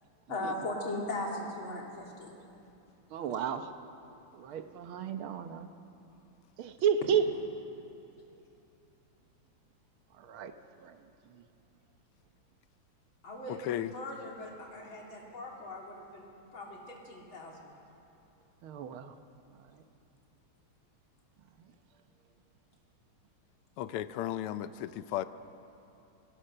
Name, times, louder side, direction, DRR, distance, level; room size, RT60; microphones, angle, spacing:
voice 1, 0.3-2.3 13.2-17.7, left 2 dB, 65° left, -1 dB, 3.7 m, -39 dB
voice 2, 3.1-3.7 4.3-5.7 6.6-7.2 10.2-10.5 10.8-10.9 18.6-19.1, right 8 dB, 75° right, 8 dB, 1.8 m, -32 dB
voice 3, 13.5-14.0 23.8-25.2, left 12 dB, 85° left, 13 dB, 1.6 m, -35 dB
25.0 x 18.5 x 6.8 m, 2.8 s
omnidirectional pair, 2.4 m